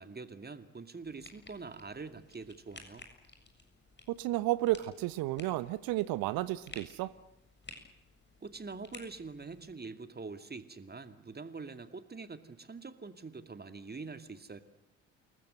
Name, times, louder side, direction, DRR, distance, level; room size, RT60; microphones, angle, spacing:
voice 1, 0.0-3.0 8.4-14.6, right 4 dB, 25° right, 10 dB, 2.4 m, -45 dB
sound 1, 1.0-9.7, left 3 dB, 25° left, 7.3 m, -55 dB
voice 2, 4.1-7.1, right 16 dB, 60° right, 17 dB, 1.1 m, -32 dB
28.5 x 19.5 x 7.9 m, 0.84 s
figure-of-eight pair, 50°, 40 cm